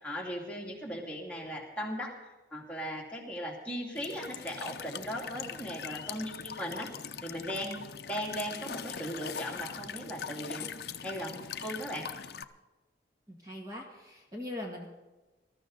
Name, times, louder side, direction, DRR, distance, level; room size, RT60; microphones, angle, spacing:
voice 1, 0.0-6.9 7.2-7.8 8.1-12.1, equal, 5° left, -3 dB, 2.6 m, -38 dB
Walk footsteps / Chirp tweet / Stream, 4.0-12.4, left 7 dB, 60° left, 0.6 m, -41 dB
voice 2, 13.3-14.9, left 1 dB, 20° right, 0 dB, 1.8 m, -41 dB
20.5 x 13.0 x 4.0 m, 1.1 s
head